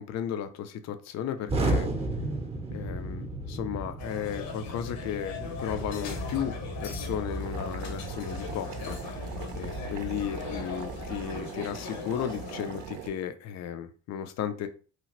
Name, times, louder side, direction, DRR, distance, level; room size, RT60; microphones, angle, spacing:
voice 1, 0.0-1.9 2.7-9.3 9.5-14.7, left 9 dB, 45° left, 9 dB, 0.5 m, -35 dB
Explosion, 1.5-11.4, right 2 dB, 15° right, 0.7 m, -34 dB
sound 1, 4.0-12.9, left 5 dB, 65° left, 0.9 m, -40 dB
Boiling, 7.4-13.1, right 7 dB, 55° right, 0.6 m, -42 dB
2.9 x 2.4 x 2.9 m, 0.38 s
supercardioid pair, 75°, 37 cm